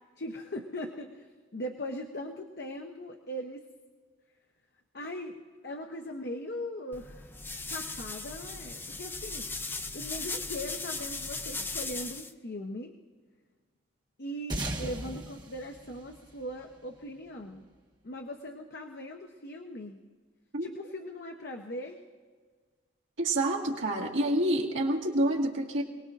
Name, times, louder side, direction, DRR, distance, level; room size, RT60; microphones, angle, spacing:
voice 1, 0.2-3.6 4.9-5.4 5.6-7.3 7.7-12.9 14.2-17.6 18.0-20.0 20.6-22.0, left 1 dB, 55° left, 3 dB, 0.9 m, -40 dB
sound 1, 6.9-12.3, left 3 dB, 10° left, 0.4 m, -37 dB
sound 2, 14.5-17.3, right 1 dB, 20° right, 1.3 m, -38 dB
voice 2, 23.2-25.8, right 1 dB, 75° right, -2 dB, 1.8 m, -28 dB
26.5 x 19.5 x 2.6 m, 1.5 s
head